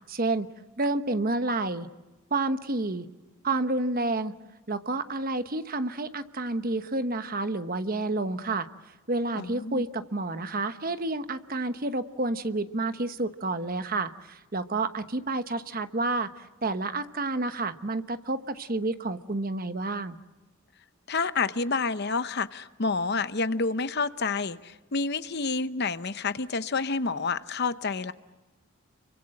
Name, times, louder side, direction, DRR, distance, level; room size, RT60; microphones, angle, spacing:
voice 1, 0.1-0.5 0.8-1.9 2.3-3.1 3.4-4.3 4.7-8.7 9.1-20.2, right 2 dB, 40° right, 10 dB, 1.1 m, -29 dB
voice 2, 9.3-9.8 21.1-28.1, left 4 dB, 50° left, 13 dB, 0.8 m, -29 dB
29.5 x 24.0 x 7.7 m, 1.1 s
head